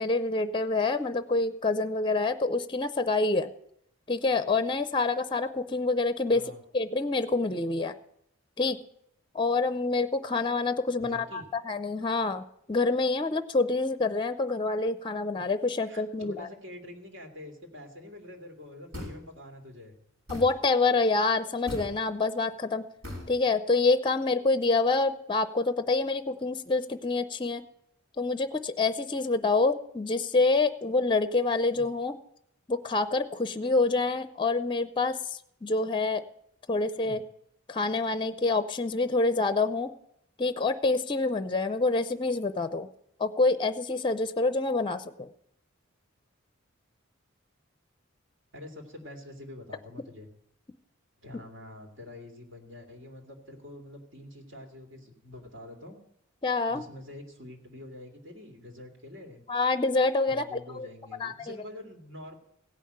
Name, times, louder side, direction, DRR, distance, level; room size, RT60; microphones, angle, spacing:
voice 1, 0.0-3.5 4.1-6.4 6.7-7.9 8.6-8.8 9.3-16.5 20.3-22.9 23.3-27.6 28.2-32.1 32.7-35.2 35.6-36.2 36.7-37.2 37.7-39.9 40.4-42.9 43.2-45.3 56.4-56.8 59.5-60.4 60.8-60.9 61.2-61.6, left 3 dB, 25° left, 12 dB, 0.5 m, -27 dB
voice 2, 6.3-6.6 11.0-11.5 15.8-20.0 31.7-31.8 37.0-37.2 48.5-50.3 51.2-56.0 56.7-59.4 60.3-62.4, left 1 dB, 60° right, 3 dB, 2.3 m, -46 dB
sound 1, 18.9-19.3 20.3-20.5 21.7-21.9 23.0-23.3, left 1 dB, 90° right, 5.8 m, -38 dB
16.5 x 5.6 x 8.6 m, 0.74 s
head